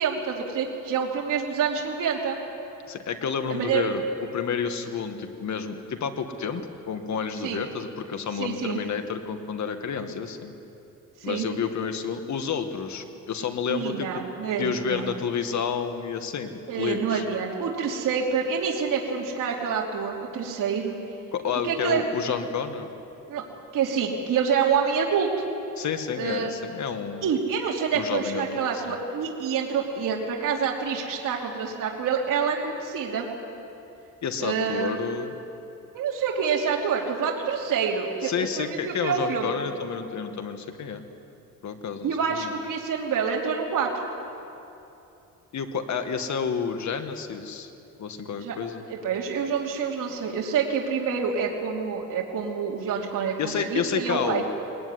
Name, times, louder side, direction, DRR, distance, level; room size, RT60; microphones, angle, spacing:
voice 1, 0.0-2.4 3.5-3.9 7.4-7.6 8.3-8.8 11.2-11.5 13.7-15.1 16.7-20.9 21.6-22.0 23.3-23.4 23.7-25.3 26.2-26.5 27.2-33.2 34.4-35.0 35.9-39.6 42.0-43.9 48.4-48.6 48.9-54.4, right 6 dB, 70° right, -1 dB, 2.9 m, -27 dB
voice 2, 2.9-4.0 4.3-10.5 11.2-14.1 14.6-17.2 21.3-22.9 25.8-27.3 27.9-29.0 34.2-35.4 38.2-41.0 41.6-42.5 45.5-47.7 48.0-48.8 53.4-54.4, left 6 dB, 55° left, 7 dB, 2.0 m, -30 dB
21.5 x 20.0 x 9.8 m, 2.8 s
cardioid pair, 115°, 34 cm